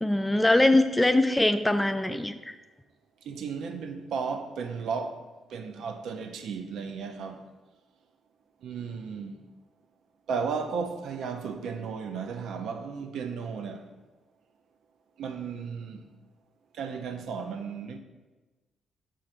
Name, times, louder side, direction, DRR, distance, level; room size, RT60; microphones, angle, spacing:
voice 1, 0.0-2.6, left 1 dB, 15° left, 0.3 m, -22 dB
voice 2, 3.2-7.5 8.6-9.4 10.3-13.9 15.2-16.1 16.7-18.0, right 5 dB, 70° right, 0.4 m, -34 dB
5.0 x 2.5 x 4.2 m
hypercardioid pair, 50°, 0 cm